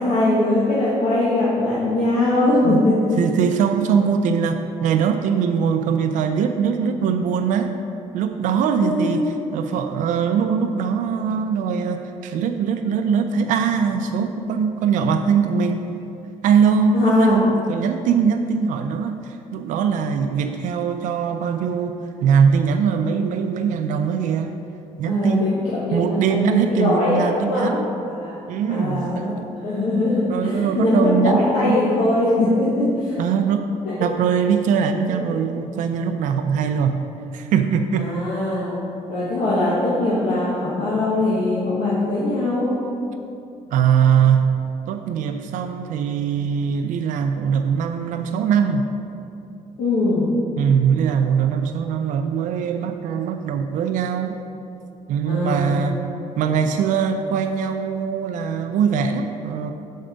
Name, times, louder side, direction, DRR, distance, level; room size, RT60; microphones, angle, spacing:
voice 1, 0.0-3.0 8.8-9.3 16.9-17.5 25.0-27.7 28.1-28.3 28.7-33.2 35.1-35.2 37.9-38.8 39.1-42.7 49.8-50.3 55.3-55.7, left 2 dB, 70° left, -8 dB, 1.3 m, -21 dB
voice 2, 3.2-7.7 8.1-9.3 9.5-15.8 16.4-24.5 25.0-25.6 25.9-27.9 28.5-29.4 30.3-31.8 33.2-33.6 34.0-37.0 37.3-38.1 43.7-44.6 44.9-48.8 50.6-54.4 55.1-56.0 56.3-59.7, right 7 dB, 80° right, 6 dB, 0.4 m, -21 dB
6.4 x 4.3 x 5.0 m, 2.7 s
cardioid pair, 100°, 13 cm